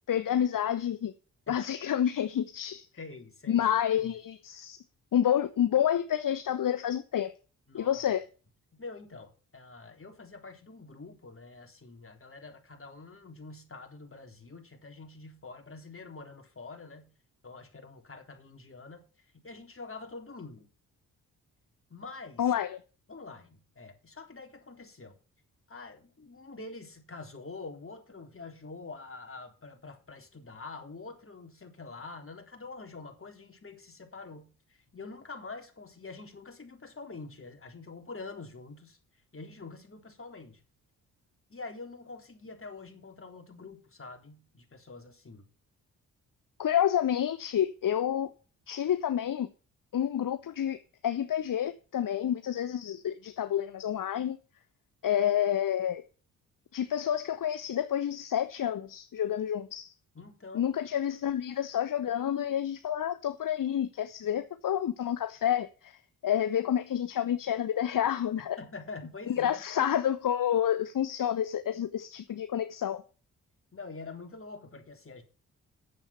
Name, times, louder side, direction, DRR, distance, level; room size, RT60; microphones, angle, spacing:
voice 1, 0.1-1.1 1.5-2.9 3.5-4.8 5.1-7.3 7.7-8.2 22.4-22.8 46.6-48.3 48.7-49.5 49.9-54.4 55.0-56.0 56.7-59.9 60.5-68.6 69.3-73.0, left 10 dB, 55° left, 1.0 m, -29 dB
voice 2, 3.0-3.6 4.0-4.1 7.7-8.0 8.7-17.2 17.4-19.1 19.3-20.7 21.9-22.5 23.1-25.2 25.7-39.0 39.3-40.6 41.5-45.5 60.2-60.7 68.6-69.6 73.7-75.2, left 3 dB, 35° left, 3.8 m, -46 dB
10.0 x 7.4 x 5.6 m
supercardioid pair, 45°, 38 cm